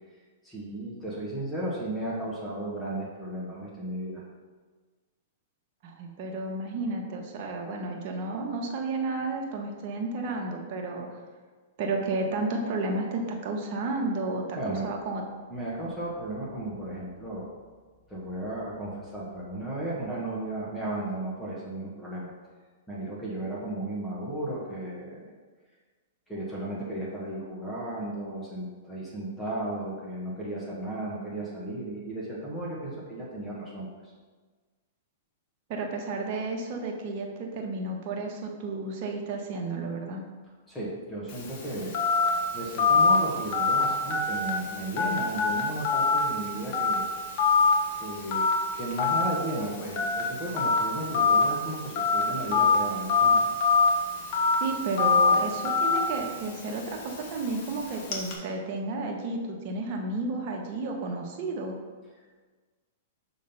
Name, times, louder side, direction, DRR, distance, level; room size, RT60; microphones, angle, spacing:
voice 1, 0.4-4.2 14.6-14.9 15.5-17.5 18.1-22.3 22.9-25.2 26.3-33.9 40.7-42.0 42.5-47.0 48.0-48.5 48.7-53.4, right 1 dB, 10° left, -6 dB, 1.6 m, -34 dB
voice 2, 5.8-11.1 11.8-15.2 35.7-40.2 54.6-61.8, right 3 dB, 45° right, 1 dB, 1.3 m, -32 dB
Telephone, 41.3-58.3, left 4 dB, 45° left, 1.4 m, -26 dB
6.4 x 3.7 x 5.6 m, 1.4 s
hypercardioid pair, 135°, 0 cm